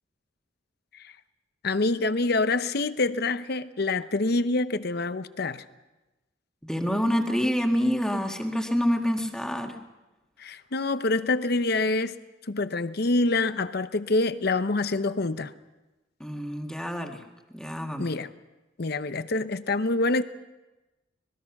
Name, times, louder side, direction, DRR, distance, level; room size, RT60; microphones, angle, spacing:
voice 1, 1.6-5.6 10.4-12.2 12.5-15.5 18.0-18.3 18.8-20.2, left 2 dB, 60° left, 12 dB, 0.9 m, -26 dB
voice 2, 6.6-9.8 16.2-17.2 17.5-18.1, equal, 5° left, 3 dB, 1.8 m, -27 dB
25.0 x 20.0 x 6.0 m, 1.1 s
head